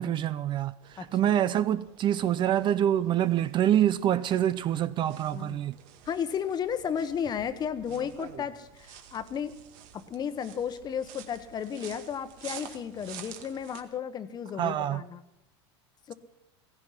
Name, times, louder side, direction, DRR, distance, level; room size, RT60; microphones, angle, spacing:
voice 1, 0.0-5.8 14.6-15.0, right 11 dB, 35° right, 0.5 m, -26 dB
sound 1, 0.8-13.8, right 9 dB, 60° right, 1.9 m, -50 dB
voice 2, 6.1-9.6 9.9-15.2 16.1-16.2, left 8 dB, 30° left, 1.2 m, -33 dB
16.0 x 15.5 x 5.8 m
supercardioid pair, 125°, 14 cm